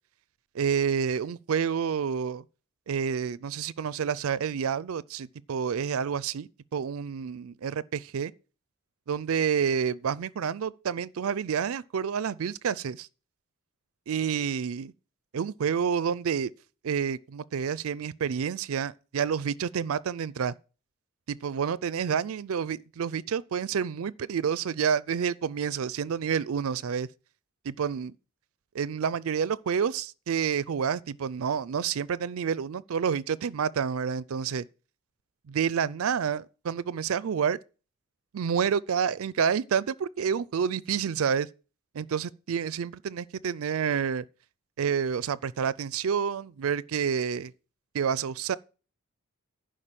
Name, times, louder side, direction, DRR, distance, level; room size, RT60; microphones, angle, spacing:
voice 1, 0.5-2.4 2.9-8.3 9.1-13.1 14.1-14.9 15.3-16.5 16.8-20.5 21.3-27.1 27.6-28.1 28.7-34.7 35.5-37.6 38.3-41.5 41.9-44.2 44.8-47.5 47.9-48.6, right 7 dB, 70° right, 0.4 m, -29 dB
11.0 x 5.1 x 7.5 m
head